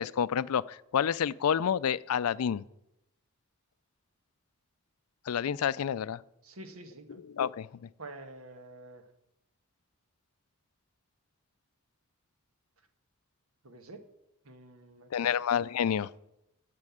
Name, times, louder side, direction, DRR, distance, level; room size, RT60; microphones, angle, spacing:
voice 1, 0.0-2.6 5.3-6.2 7.1-7.7 15.1-16.1, left 8 dB, 80° left, 19 dB, 0.4 m, -29 dB
voice 2, 6.4-7.2 8.0-9.1 13.6-14.0 14.4-15.4, right 2 dB, 70° right, 7 dB, 1.4 m, -48 dB
9.8 x 7.6 x 8.6 m, 0.86 s
head